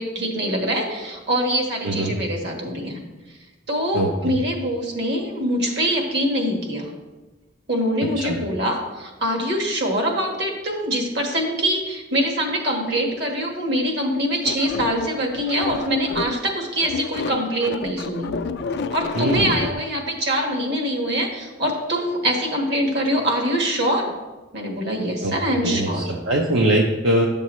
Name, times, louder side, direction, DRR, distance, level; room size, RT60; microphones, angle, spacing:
voice 1, 0.0-3.0 3.7-6.9 7.7-18.3 18.9-24.1 24.5-26.1, equal, 60° right, 2 dB, 1.5 m, -24 dB
voice 2, 1.8-2.2 3.9-4.3 8.2-8.4 19.1-19.6 25.2-25.3 25.6-27.3, right 1 dB, 80° right, 0 dB, 0.8 m, -22 dB
sound 1, 14.5-16.5 16.8-19.7, left 4 dB, 60° left, 0.4 m, -29 dB
10.5 x 7.0 x 3.1 m, 1.2 s
head